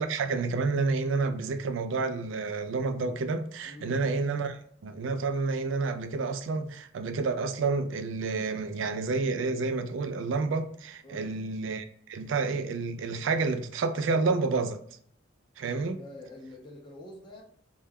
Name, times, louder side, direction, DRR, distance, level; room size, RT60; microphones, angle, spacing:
voice 1, 0.0-14.8 15.6-16.0, right 4 dB, 70° right, 0.3 m, -29 dB
voice 2, 3.7-4.1 11.0-11.4 15.8-17.4, left 1 dB, 25° left, 0.5 m, -46 dB
2.2 x 2.1 x 3.3 m
head